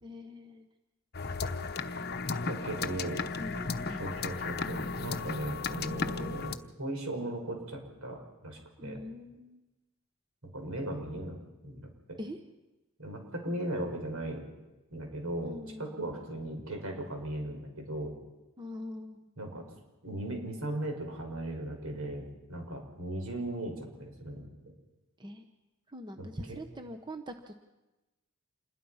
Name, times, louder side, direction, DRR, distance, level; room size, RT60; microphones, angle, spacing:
voice 1, 0.0-0.7 3.4-4.2 8.8-9.6 12.2-12.4 15.4-16.0 18.6-19.3 25.2-25.5 25.9-27.5, equal, 20° right, 6 dB, 1.0 m, -43 dB
sound 1, 1.1-6.6, left 4 dB, 45° left, 0.9 m, -35 dB
voice 2, 2.5-3.2 3.9-9.0 10.4-11.4 11.6-12.2 13.0-14.4 14.9-18.1 19.4-19.7 20.0-24.5 26.2-26.6, right 1 dB, 75° right, 2 dB, 5.7 m, -37 dB
27.5 x 21.0 x 5.7 m, 1.1 s
head